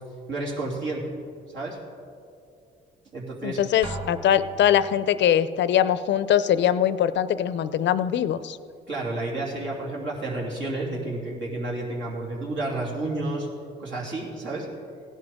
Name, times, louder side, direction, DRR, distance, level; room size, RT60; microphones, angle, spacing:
voice 1, 0.3-1.1 1.5-1.8 3.1-3.6 8.9-13.5 13.8-14.7, right 2 dB, 70° right, -3 dB, 2.9 m, -30 dB
voice 2, 3.4-8.6, left 10 dB, 65° left, 14 dB, 0.5 m, -22 dB
Drum, 3.8-5.0, right 1 dB, 30° right, 1.6 m, -37 dB
16.5 x 11.0 x 3.6 m, 2.5 s
cardioid pair, 90°, 20 cm